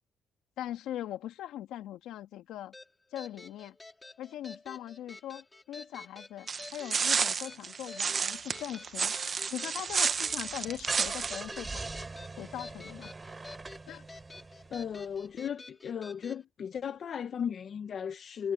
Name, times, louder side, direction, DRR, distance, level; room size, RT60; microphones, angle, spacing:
voice 1, 0.6-2.7 3.1-3.8 4.2-9.1 9.5-11.9 12.4-13.1 13.9-14.0, left 12 dB, 85° left, 2.5 m, -41 dB
sound 1, 2.7-16.4, left 2 dB, 20° left, 5.0 m, -50 dB
sound 2, 6.5-11.4, right 6 dB, 45° right, 1.0 m, -31 dB
Car / Engine starting, 10.5-15.1, right 3 dB, 25° right, 4.3 m, -42 dB
voice 2, 14.7-18.5, left 7 dB, 55° left, 1.7 m, -36 dB
cardioid pair, 90°, 0 cm